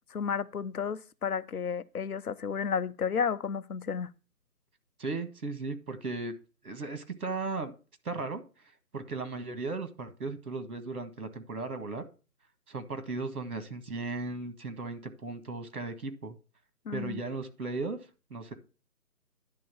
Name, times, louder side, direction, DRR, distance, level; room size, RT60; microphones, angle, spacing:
voice 1, 0.1-4.1 16.9-17.2, left 6 dB, 65° left, 0.8 m, -32 dB
voice 2, 5.0-6.3 6.6-7.8 8.0-8.4 8.9-12.0 12.7-16.4 16.9-18.0 18.3-18.5, right 3 dB, 65° right, 1.8 m, -36 dB
10.5 x 3.8 x 6.9 m
figure-of-eight pair, 165°, 47 cm